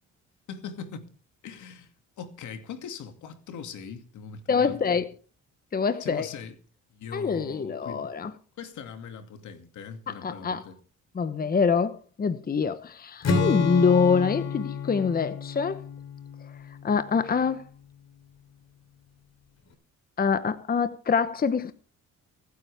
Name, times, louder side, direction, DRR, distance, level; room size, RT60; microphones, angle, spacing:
voice 1, 0.5-1.1 1.4-1.9 2.2-5.0 6.0-6.6 6.9-8.1 8.6-10.8, left 6 dB, 75° left, 2.4 m, -41 dB
voice 2, 4.5-5.1 5.7-6.3 7.1-8.3 10.1-10.6 11.1-15.8 16.8-17.6 20.2-21.7, left 5 dB, 30° left, 0.9 m, -25 dB
Strum, 13.2-17.3, left 4 dB, 60° left, 3.5 m, -30 dB
24.0 x 9.4 x 3.5 m
cardioid pair, 90°, 30 cm